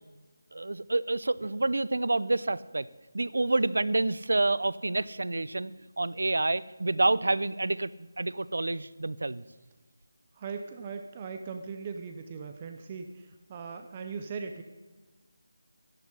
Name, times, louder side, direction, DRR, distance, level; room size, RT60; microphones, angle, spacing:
voice 1, 0.5-2.9 3.1-5.7 6.0-9.4, right 2 dB, 65° right, 18 dB, 0.6 m, -28 dB
voice 2, 10.3-14.6, right 5 dB, 15° right, 7 dB, 0.5 m, -39 dB
11.0 x 11.0 x 9.8 m, 1.3 s
figure-of-eight pair, 180°, 0 cm